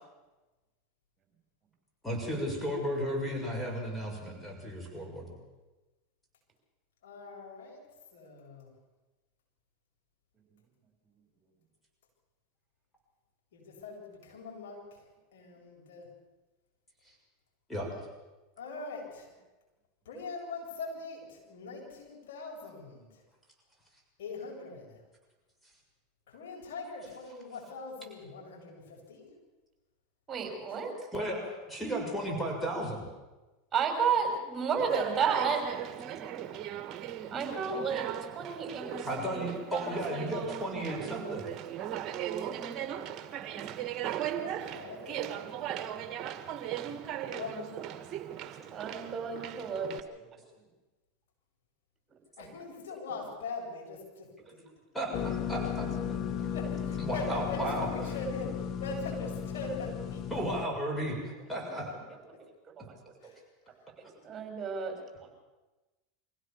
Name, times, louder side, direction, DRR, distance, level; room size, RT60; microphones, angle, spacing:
voice 1, 2.0-5.3 17.1-17.2 17.7-17.9 31.1-33.0 39.0-41.5 54.9-55.9 57.0-57.9 60.3-61.9, equal, 5° left, 1 dB, 6.7 m, -34 dB
voice 2, 7.0-8.7 13.5-15.1 15.3-16.1 18.6-19.3 20.0-23.2 24.2-25.0 26.3-29.3 30.7-30.9 44.3-45.4 47.2-47.7 52.4-54.6 56.5-60.2, left 3 dB, 70° left, -2 dB, 8.0 m, -42 dB
voice 3, 30.3-30.9 33.7-35.8 37.3-39.1 48.7-50.2 62.9-63.0 64.0-64.9, right 6 dB, 25° right, 3 dB, 6.2 m, -32 dB
Conversation, 34.8-50.0, right 10 dB, 40° right, 1.7 m, -38 dB
sound 1, 55.1-60.7, left 8 dB, 40° left, 1.1 m, -35 dB
24.5 x 16.5 x 7.3 m, 1.2 s
hypercardioid pair, 90°, 0 cm